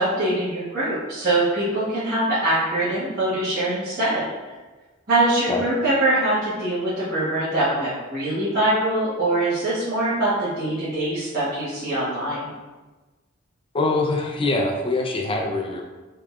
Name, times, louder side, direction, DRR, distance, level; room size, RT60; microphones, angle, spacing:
voice 1, 0.0-4.3 5.1-12.5, right 1 dB, 50° right, -13 dB, 1.1 m, -23 dB
voice 2, 13.7-15.8, left 2 dB, 25° left, 2 dB, 0.4 m, -23 dB
3.5 x 3.2 x 2.4 m, 1.2 s
head